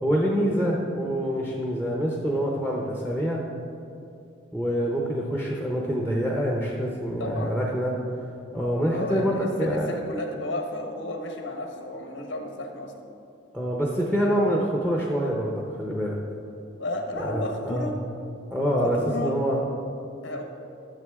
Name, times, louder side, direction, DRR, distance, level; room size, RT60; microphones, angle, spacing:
voice 1, 0.0-3.4 4.5-8.0 8.5-10.0 13.5-16.2 17.2-17.9 18.5-19.6, equal, 5° right, -2 dB, 0.8 m, -26 dB
voice 2, 7.2-7.6 8.9-12.9 16.8-17.9 18.8-19.3 20.2-20.4, left 1 dB, 80° left, 3 dB, 1.1 m, -33 dB
12.5 x 7.1 x 3.6 m, 2.7 s
head